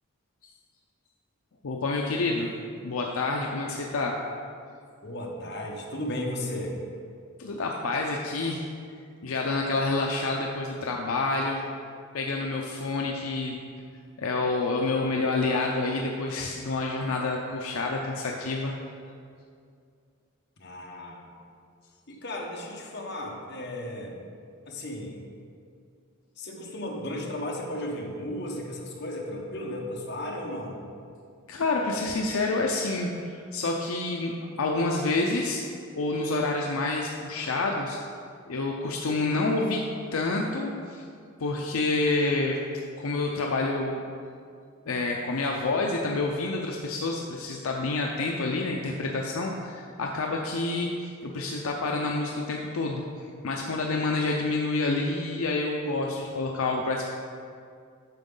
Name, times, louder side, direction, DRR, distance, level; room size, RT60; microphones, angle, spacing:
voice 1, 1.6-2.5 2.8-4.2 7.4-8.7 9.2-11.6 12.1-13.6 14.2-18.7 31.5-35.7 36.0-38.0 38.5-39.9 40.1-41.0 41.4-42.6 43.0-44.0 44.9-57.1, left 3 dB, 75° left, 0 dB, 0.6 m, -28 dB
voice 2, 5.0-6.7 20.6-21.3 22.1-24.2 24.7-25.2 26.4-30.8, left 1 dB, 50° left, -1 dB, 1.1 m, -35 dB
9.1 x 6.0 x 3.8 m, 2.3 s
head